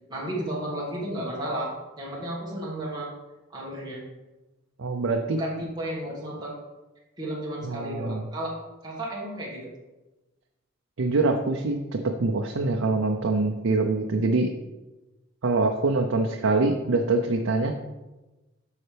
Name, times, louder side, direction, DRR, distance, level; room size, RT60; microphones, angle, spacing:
voice 1, 0.1-3.1 3.5-4.0 5.3-6.6 7.2-8.6 8.8-9.7, right 1 dB, 20° right, -5 dB, 1.7 m, -33 dB
voice 2, 4.8-5.4 7.6-8.2 11.0-14.5 15.4-17.8, right 3 dB, 85° right, 3 dB, 0.6 m, -24 dB
8.5 x 5.6 x 3.4 m, 1.1 s
head